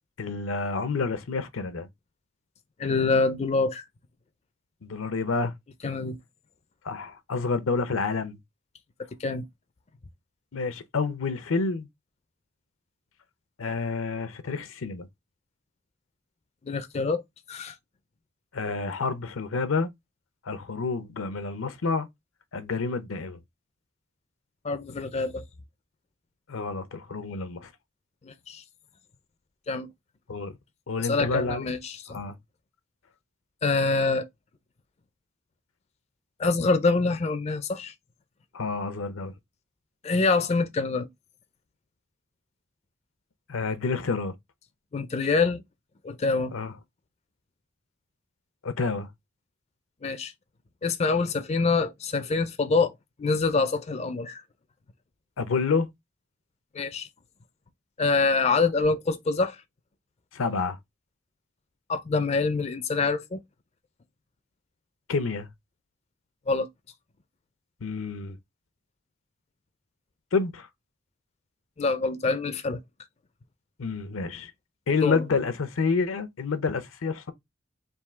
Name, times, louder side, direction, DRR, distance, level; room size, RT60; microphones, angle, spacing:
voice 1, 0.2-1.9 4.8-5.5 6.8-8.4 10.5-11.9 13.6-15.1 18.5-19.9 20.5-22.1 22.5-23.4 26.5-27.7 30.3-30.6 30.9-31.7 32.1-32.4 38.5-39.3 43.5-44.3 46.5-46.7 48.6-49.1 55.4-55.9 60.3-60.8 65.1-65.5 67.8-68.4 70.3-70.7 73.8-74.5 74.9-77.3, left 4 dB, 80° left, 0.6 m, -28 dB
voice 2, 2.8-3.8 5.8-6.2 9.2-9.4 16.6-17.2 17.5-17.7 24.6-25.4 28.2-28.6 29.7-29.9 31.0-32.2 33.6-34.3 36.4-37.9 40.0-41.1 44.9-45.6 46.0-46.5 50.0-50.3 50.8-52.9 53.2-54.4 56.7-57.1 58.0-59.6 61.9-63.4 66.5-66.7 71.8-72.8 75.0-75.2, left 3 dB, 30° left, 0.4 m, -25 dB
3.6 x 2.7 x 4.3 m
head